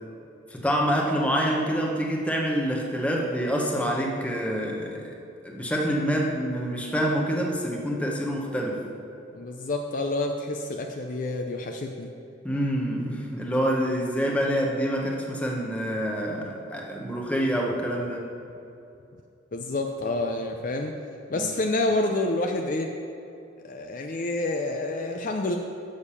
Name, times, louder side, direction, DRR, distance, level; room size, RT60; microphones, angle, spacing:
voice 1, 0.5-5.1 5.4-8.9 12.4-18.3 21.3-21.5, equal, 5° left, -1 dB, 0.8 m, -26 dB
voice 2, 9.3-12.1 19.5-20.9 21.3-22.9 23.6-25.6, left 2 dB, 40° left, 3 dB, 0.4 m, -28 dB
7.0 x 6.5 x 5.5 m, 2.8 s
head